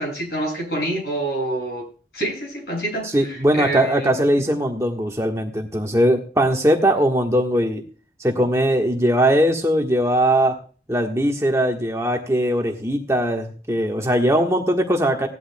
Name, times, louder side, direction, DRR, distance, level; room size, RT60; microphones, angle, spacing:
voice 1, 0.0-1.9 2.1-4.1, right 1 dB, 60° left, 1 dB, 7.0 m, -27 dB
voice 2, 3.0-7.8 8.2-10.5 10.9-15.3, right 1 dB, 15° right, 2 dB, 1.4 m, -20 dB
18.0 x 11.5 x 2.3 m, 0.39 s
head